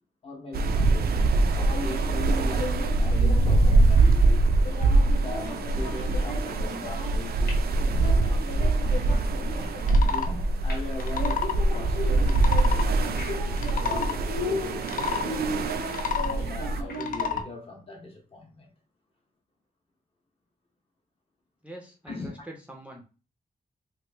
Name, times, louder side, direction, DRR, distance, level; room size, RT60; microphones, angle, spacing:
voice 1, 0.2-4.5 5.1-9.0 9.8-12.4 12.8-15.5 16.2-18.7 22.1-22.3, left 2 dB, 35° left, 0.8 m, -40 dB
sound 1, 0.5-16.8, right 2 dB, 80° right, 0.4 m, -23 dB
sound 2, 1.4-17.4, left 1 dB, 85° left, 1.1 m, -36 dB
sound 3, 9.8-10.3 10.9-11.6 12.2-12.9 13.5-14.2 14.8-15.3 15.8-16.4 16.9-17.5, left 7 dB, 60° left, 0.4 m, -30 dB
voice 2, 21.6-23.0, right 1 dB, 10° right, 0.5 m, -44 dB
3.1 x 2.5 x 3.3 m
wide cardioid pair, 175°, 16 cm